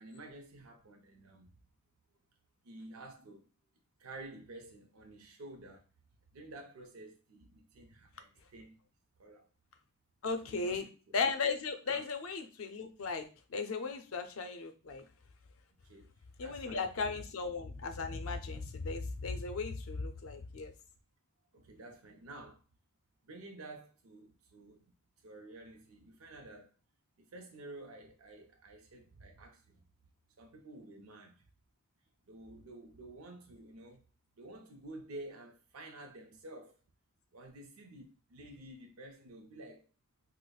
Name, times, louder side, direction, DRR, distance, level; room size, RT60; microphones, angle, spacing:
voice 1, 0.0-1.6 2.6-3.5 4.0-5.8 6.3-8.8 9.2-9.5 10.4-10.8 11.9-12.0 15.8-16.1 16.4-16.8 21.5-22.6 23.2-24.9 25.2-26.7 27.2-29.9 30.4-31.5 32.3-34.0 34.4-36.7 37.3-39.9, right 2 dB, 90° right, 0.5 m, -51 dB
voice 2, 10.2-10.8 11.1-15.0 16.4-20.7, left 4 dB, 75° left, 0.5 m, -36 dB
4.8 x 2.0 x 2.3 m
head